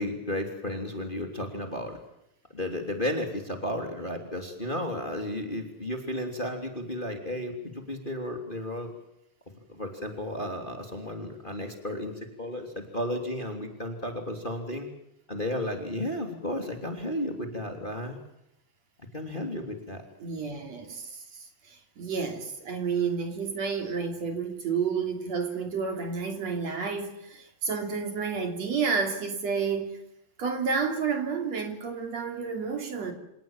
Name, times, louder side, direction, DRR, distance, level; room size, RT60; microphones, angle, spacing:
voice 1, 0.0-2.0 2.5-8.9 9.7-14.9 15.3-18.2 19.1-20.0, left 1 dB, 15° left, 2.8 m, -33 dB
voice 2, 20.2-30.0 30.4-33.1, right 5 dB, 45° right, 3.9 m, -30 dB
27.5 x 18.0 x 7.3 m
omnidirectional pair, 4.5 m